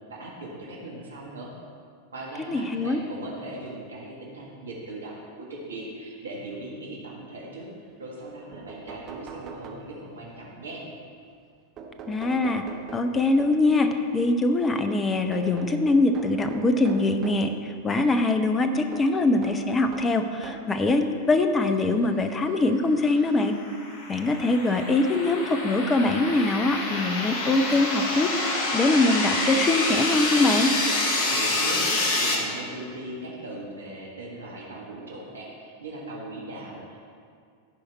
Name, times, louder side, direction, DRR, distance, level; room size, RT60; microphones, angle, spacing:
voice 1, 0.1-1.5 2.1-7.7 8.0-10.8 31.3-37.0, right 2 dB, 70° right, -3 dB, 1.6 m, -39 dB
voice 2, 2.5-3.0 12.1-12.7 12.9-23.6 24.1-30.7, left 2 dB, 20° left, 7 dB, 0.7 m, -23 dB
sound 1, 8.2-8.3 8.5-10.3 11.8-13.8 15.3-17.5 18.9-20.8 21.7-21.8 23.1-23.2 23.5-23.6, right 4 dB, 30° right, 1.0 m, -42 dB
sound 2, 23.4-32.4, left 2 dB, 45° left, 1.3 m, -27 dB
14.5 x 5.0 x 4.1 m, 2.2 s
figure-of-eight pair, 90°, 0 cm